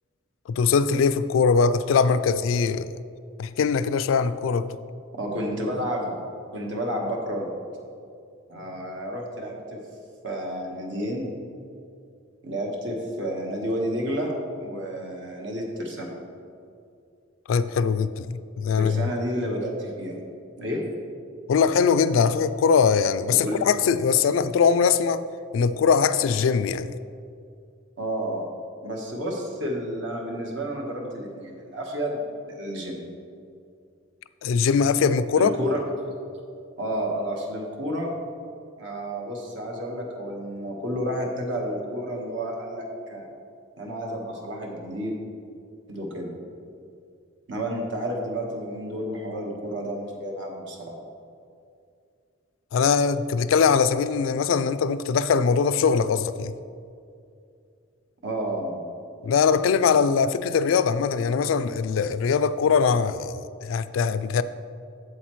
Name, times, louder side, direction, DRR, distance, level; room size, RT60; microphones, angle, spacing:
voice 1, 0.5-2.9 3.4-4.7 17.5-19.1 21.5-25.2 25.5-26.9 34.4-35.5 52.7-56.5 59.2-64.4, left 6 dB, 80° left, 0.3 m, -21 dB
voice 2, 5.1-6.2 6.5-7.5 8.5-9.8 10.2-11.3 12.4-14.3 14.6-16.1 18.7-20.2 20.6-20.8 23.4-23.6 28.0-28.5 28.8-33.0 35.4-36.1 36.8-38.1 38.8-42.8 43.1-43.3 43.8-45.2 45.9-46.4 47.5-51.0 58.2-58.8, equal, 65° right, 1.3 m, -30 dB
8.2 x 7.8 x 3.1 m
head